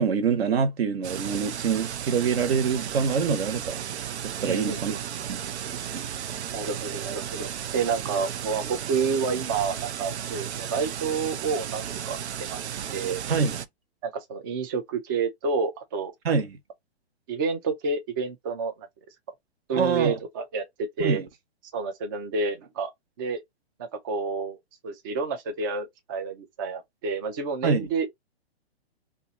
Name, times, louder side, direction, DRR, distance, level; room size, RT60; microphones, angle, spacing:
voice 1, 0.0-3.8 4.2-4.9 5.3-5.4 5.6-6.1 13.3-13.6 16.2-16.6 19.7-20.2 21.0-21.3 27.6-27.9, right 6 dB, 65° right, 1.1 m, -25 dB
sound 1, 1.0-13.7, right 9 dB, 80° right, 0.6 m, -34 dB
voice 2, 4.4-5.0 6.5-13.2 14.0-16.1 17.3-18.9 19.7-21.2 21.7-22.9 23.2-23.4 23.8-24.6 24.8-28.1, right 4 dB, 20° right, 0.3 m, -29 dB
2.6 x 2.5 x 3.9 m
hypercardioid pair, 145°, 33 cm